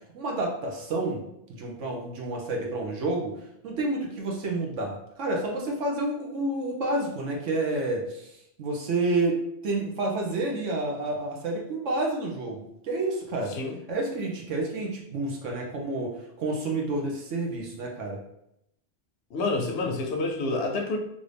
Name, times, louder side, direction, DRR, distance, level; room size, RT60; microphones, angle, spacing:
voice 1, 0.1-1.2 1.5-3.3 3.6-13.5 13.9-18.2, right 2 dB, 80° right, -1 dB, 1.2 m, -29 dB
voice 2, 19.3-21.0, left 2 dB, 65° left, 1 dB, 0.8 m, -28 dB
3.4 x 2.6 x 3.3 m, 0.78 s
omnidirectional pair, 1.3 m